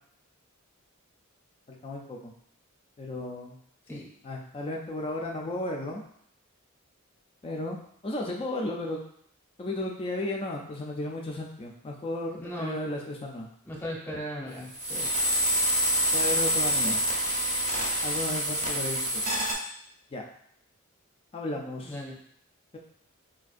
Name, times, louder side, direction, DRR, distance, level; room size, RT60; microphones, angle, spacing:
voice 1, 1.8-2.3 3.0-3.6 4.2-6.0 7.4-7.8 8.0-9.0 9.6-13.5 16.1-17.0 18.0-19.2 20.1-20.2 21.3-22.0, left 1 dB, 25° left, 0 dB, 0.3 m, -34 dB
voice 2, 12.4-12.8 13.6-15.1 21.8-22.2, equal, 10° left, -4 dB, 0.7 m, -37 dB
sound 1, 14.7-19.5, equal, 40° right, 0.7 m, -26 dB
4.3 x 2.4 x 2.4 m, 0.67 s
head